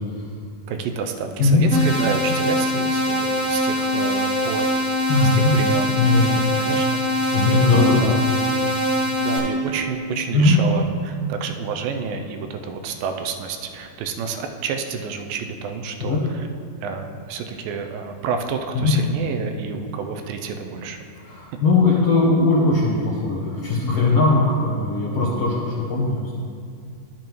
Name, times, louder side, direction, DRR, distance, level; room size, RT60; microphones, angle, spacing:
voice 1, 0.7-4.7 5.2-7.0 7.8-8.2 9.2-16.5 16.8-21.1, right 5 dB, 85° right, 6 dB, 2.3 m, -29 dB
sound 1, 1.7-9.4, left 1 dB, 40° left, 1.2 m, -22 dB
voice 2, 5.1-5.5 5.9-6.4 7.3-8.1 10.3-10.6 16.0-16.2 18.7-18.9 21.2-26.3, left 3 dB, 70° left, -6 dB, 1.5 m, -19 dB
13.0 x 7.1 x 3.0 m, 2.3 s
omnidirectional pair, 4.0 m